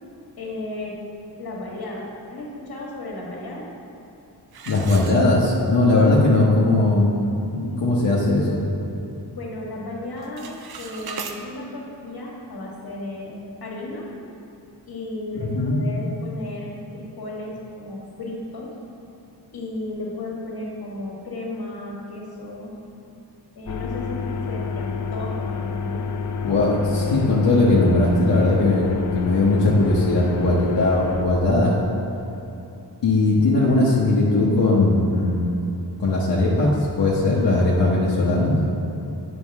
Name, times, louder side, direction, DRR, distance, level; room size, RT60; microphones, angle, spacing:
voice 1, 0.4-1.0 1.4-3.7 9.3-14.1 14.9-18.7 19.5-22.7 23.6-26.1, left 2 dB, 60° left, -3 dB, 1.8 m, -34 dB
sound 1, 4.5-5.8 6.2-6.3 6.9-7.0 7.4-7.7 8.1-9.2 9.5-9.9 10.1-11.4, right 5 dB, 65° right, 0.7 m, -38 dB
voice 2, 4.7-7.1 7.5-8.6 15.4-15.8 26.4-31.8 33.0-35.6 36.0-38.5, left 2 dB, 90° left, -6 dB, 1.2 m, -19 dB
sound 2, 23.7-31.2, left 5 dB, 45° left, 0.6 m, -29 dB
9.3 x 6.1 x 3.6 m, 2.9 s
wide cardioid pair, 105°, 41 cm